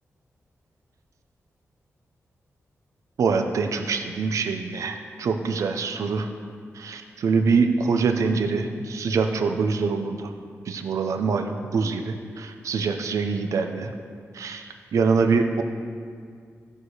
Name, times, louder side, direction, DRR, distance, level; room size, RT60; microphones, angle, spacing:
voice 1, 3.2-6.3 6.7-10.3 10.7-13.9 14.3-15.6, right 4 dB, 85° right, 6 dB, 0.7 m, -24 dB
14.0 x 4.9 x 6.4 m, 2.1 s
wide cardioid pair, 130°, 5 cm